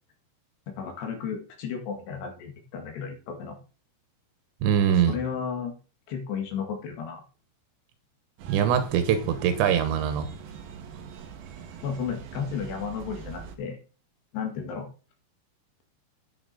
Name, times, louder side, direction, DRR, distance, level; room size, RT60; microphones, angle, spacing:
voice 1, 0.7-3.6 5.1-5.7 6.1-7.2 11.8-13.8 14.3-14.9, left 6 dB, 70° left, 3 dB, 3.9 m, -33 dB
voice 2, 4.6-5.2 8.5-10.3, right 8 dB, 85° right, 9 dB, 3.5 m, -23 dB
sound 1, 8.4-13.6, right 7 dB, 65° right, 2.8 m, -43 dB
9.8 x 9.8 x 4.1 m, 0.36 s
omnidirectional pair, 5.1 m